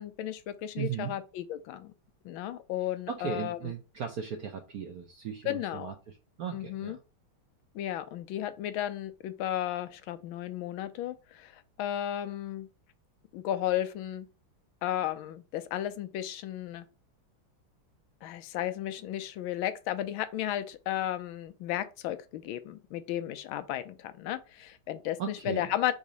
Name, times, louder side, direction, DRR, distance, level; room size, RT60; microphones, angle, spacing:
voice 1, 0.0-1.9 2.2-3.7 5.4-5.9 6.5-7.0 7.7-12.7 13.3-14.3 14.8-16.9 18.2-25.9, left 12 dB, 80° left, 1.4 m, -34 dB
voice 2, 0.8-1.1 3.1-5.9 6.4-7.0 25.2-25.7, right 7 dB, 75° right, 0.8 m, -36 dB
4.0 x 2.7 x 4.8 m
omnidirectional pair, 2.2 m